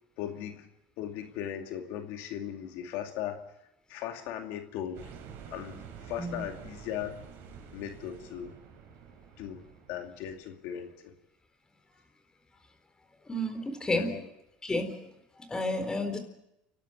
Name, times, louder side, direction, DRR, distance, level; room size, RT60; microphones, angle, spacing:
voice 1, 0.2-0.7 1.0-3.4 3.9-5.1 5.5-7.1 7.7-8.5 9.4-9.6 9.9-11.1 13.9-14.2, left 10 dB, 70° left, 4 dB, 2.4 m, -38 dB
sound 1, 4.9-10.5, right 7 dB, 60° right, 4.7 m, -49 dB
voice 2, 13.3-14.1 14.6-15.1 15.4-16.2, left 1 dB, 15° left, 8 dB, 4.1 m, -31 dB
30.0 x 12.0 x 8.0 m, 0.84 s
supercardioid pair, 100°, 4 cm